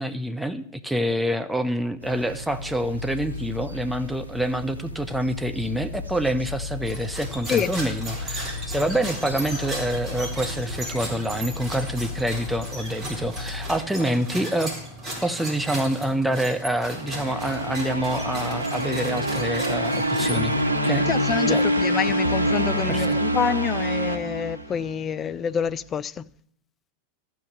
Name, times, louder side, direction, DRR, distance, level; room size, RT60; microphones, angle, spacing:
voice 1, 0.0-14.7 15.2-20.5 20.8-21.1 21.5-21.7 22.9-23.2, right 1 dB, 5° right, 0.7 m, -27 dB
sound 1, 2.0-13.8, left 3 dB, 85° right, 0.8 m, -36 dB
sound 2, 6.8-20.8, right 1 dB, 25° right, 4.1 m, -36 dB
sound 3, 16.8-25.1, right 1 dB, 90° left, 0.8 m, -25 dB
voice 2, 21.1-26.3, left 8 dB, 25° left, 0.3 m, -27 dB
13.0 x 5.4 x 7.7 m
figure-of-eight pair, 90°, 0 cm